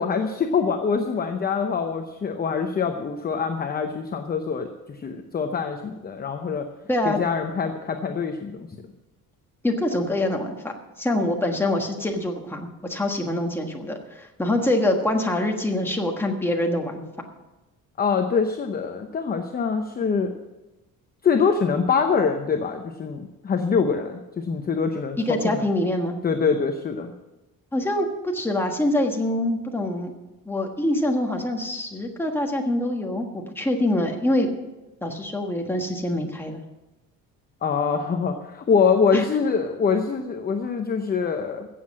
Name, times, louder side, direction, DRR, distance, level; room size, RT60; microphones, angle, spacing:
voice 1, 0.0-6.7 7.0-8.7 18.0-20.3 21.2-25.6 26.2-27.1 37.6-41.7, left 5 dB, 25° left, 5 dB, 0.7 m, -24 dB
voice 2, 9.6-17.0 25.2-26.2 27.7-30.1 30.4-34.5 35.0-36.6 39.1-39.2, left 1 dB, 5° left, 1 dB, 1.4 m, -25 dB
15.0 x 7.6 x 7.5 m, 1.0 s
cardioid pair, 165°, 37 cm